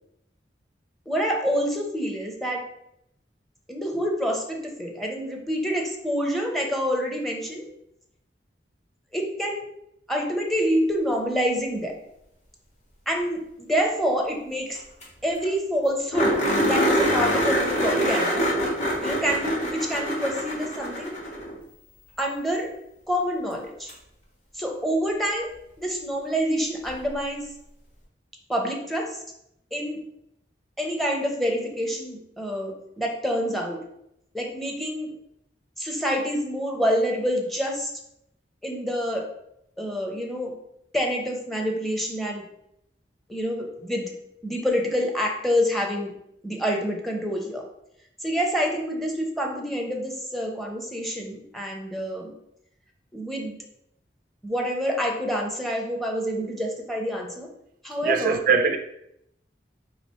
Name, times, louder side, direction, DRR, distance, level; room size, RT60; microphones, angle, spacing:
voice 1, 1.1-2.6 3.7-7.7 9.1-9.6 10.1-11.9 13.1-14.8 15.2-18.4 19.0-21.2 22.2-22.7 23.1-23.9 24.5-25.5 25.8-27.5 28.5-29.2 29.7-30.0 30.8-33.8 34.3-35.1 35.8-37.9 38.6-39.3 39.8-40.5 40.9-42.5 43.3-44.1 44.4-46.1 46.4-47.6 48.2-52.3 53.1-53.6 54.4-57.5 57.8-58.4, equal, ahead, 0.6 m, -27 dB
sound 1, 14.7-14.8 15.0-15.1 15.4-15.5 16.1-21.6 23.9-24.0 26.8-26.9, equal, 45° left, 1.4 m, -24 dB
voice 2, 58.0-58.8, right 5 dB, 50° right, 0.3 m, -21 dB
3.1 x 2.9 x 4.3 m
head